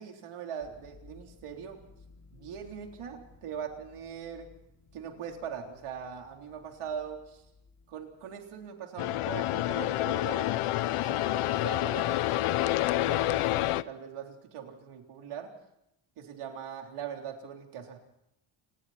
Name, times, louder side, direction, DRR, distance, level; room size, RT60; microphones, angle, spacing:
voice 1, 0.0-1.8 2.3-4.5 4.9-7.4 7.9-10.5 10.9-15.5 16.2-18.0, right 7 dB, 85° right, 2 dB, 3.8 m, -41 dB
sound 1, 0.6-8.7, left 4 dB, 35° left, 2.7 m, -58 dB
sound 2, 9.0-13.8, left 15 dB, 80° left, 0.8 m, -28 dB
29.0 x 20.5 x 4.3 m, 0.81 s
cardioid pair, 150°, 50 cm